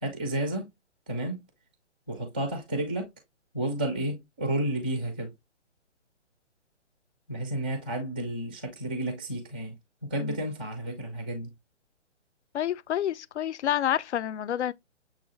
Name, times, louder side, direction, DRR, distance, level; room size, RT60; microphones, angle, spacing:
voice 1, 0.0-0.7 1.1-1.4 2.1-3.1 3.5-5.3 7.3-9.8 10.0-11.5, right 1 dB, 10° right, 0.4 m, -31 dB
voice 2, 12.5-14.7, left 10 dB, 70° left, 0.5 m, -28 dB
6.9 x 2.3 x 3.1 m
hypercardioid pair, 150°, 36 cm